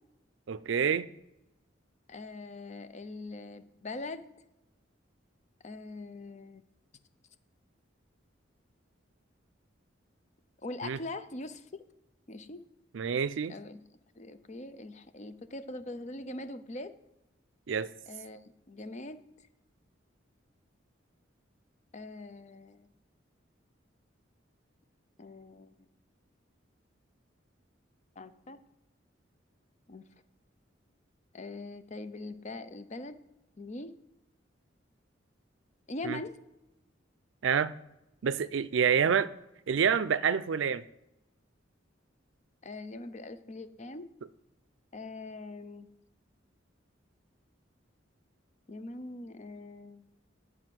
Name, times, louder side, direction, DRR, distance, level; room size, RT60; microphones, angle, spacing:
voice 1, 0.5-1.1 10.8-11.0 12.9-13.6 17.7-17.9 36.0-36.2 37.4-37.7 38.2-39.3 39.7-40.8, right 7 dB, 75° right, 0.4 m, -27 dB
voice 2, 2.1-4.3 5.6-6.6 10.6-11.6 12.3-12.6 13.5-13.8 14.2-16.9 18.1-18.4 18.7-19.2 21.9-22.9 25.2-25.7 28.2-28.6 29.9-30.0 31.3-33.2 33.6-33.9 35.9-36.4 42.6-44.1 44.9-45.9 48.7-50.0, left 2 dB, 40° left, 0.6 m, -42 dB
9.8 x 4.9 x 7.6 m
head